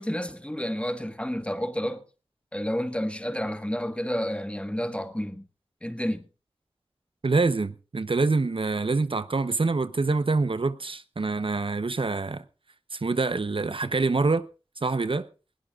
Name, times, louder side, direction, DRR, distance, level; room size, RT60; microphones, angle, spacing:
voice 1, 0.0-2.0 2.5-5.5 5.8-6.2, equal, 10° left, 1.6 m, -30 dB
voice 2, 7.2-12.4 12.9-14.4 14.8-15.3, right 3 dB, 60° right, 0.8 m, -25 dB
20.0 x 18.0 x 2.4 m
wide cardioid pair, 50°, 10 cm